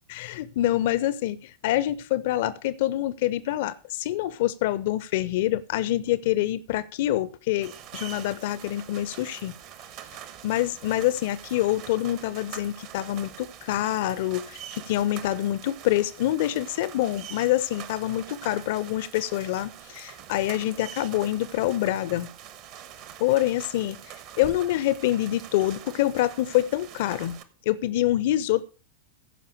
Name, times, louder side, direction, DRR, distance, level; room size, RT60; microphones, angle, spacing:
voice 1, 0.1-9.5 10.4-22.3 23.2-27.4 27.7-28.7, left 14 dB, 50° left, 0.6 m, -26 dB
sound 1, 7.6-27.4, right 10 dB, 45° right, 1.2 m, -44 dB
15.5 x 5.5 x 6.6 m
figure-of-eight pair, 90°, 0 cm